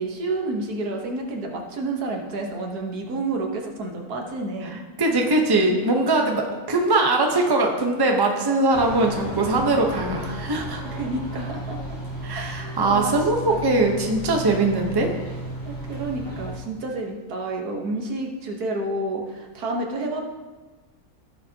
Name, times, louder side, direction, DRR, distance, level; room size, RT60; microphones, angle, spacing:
voice 1, 0.0-4.8 6.2-6.5 10.9-11.8 12.3-13.1 13.5-13.9 14.4-14.6 15.6-20.2, right 2 dB, 80° right, 1 dB, 1.7 m, -30 dB
voice 2, 4.6-10.9 12.2-15.1, right 2 dB, 20° right, 2 dB, 0.9 m, -21 dB
sound 1, 8.7-16.6, right 1 dB, 55° left, 3.3 m, -34 dB
15.5 x 6.5 x 2.9 m, 1.3 s
omnidirectional pair, 1.6 m